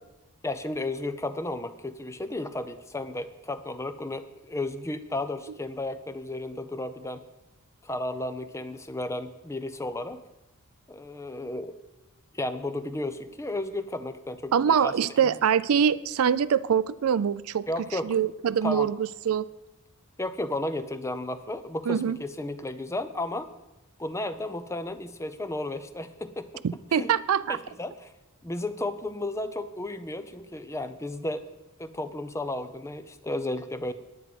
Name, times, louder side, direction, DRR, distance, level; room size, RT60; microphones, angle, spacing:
voice 1, 0.4-7.2 7.8-10.2 10.9-11.7 12.3-14.9 17.7-18.2 18.6-18.9 20.2-23.5 24.0-26.6 26.9-27.1 27.5-28.1 28.4-31.5 31.8-33.9, left 2 dB, 15° left, 11 dB, 0.5 m, -33 dB
voice 2, 14.5-17.6 18.0-19.5 21.9-22.2 26.9-27.6, right 8 dB, 70° right, 16 dB, 0.4 m, -24 dB
9.4 x 9.3 x 6.0 m, 0.98 s
head